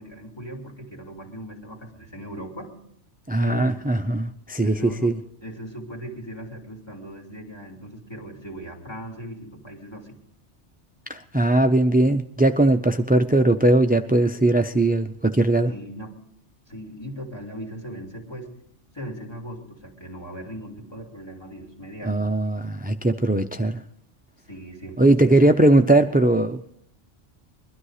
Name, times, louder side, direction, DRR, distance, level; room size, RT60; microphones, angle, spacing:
voice 1, 0.0-2.7 3.4-3.8 4.6-5.1 5.4-10.2 15.6-16.2 16.7-18.5 18.9-22.2 24.4-25.4, right 1 dB, 20° left, 1 dB, 2.8 m, -38 dB
voice 2, 3.3-5.2 11.1-15.7 22.0-23.8 25.0-26.7, right 2 dB, 15° right, 8 dB, 0.3 m, -19 dB
22.0 x 12.5 x 4.9 m, 0.70 s
omnidirectional pair, 1.2 m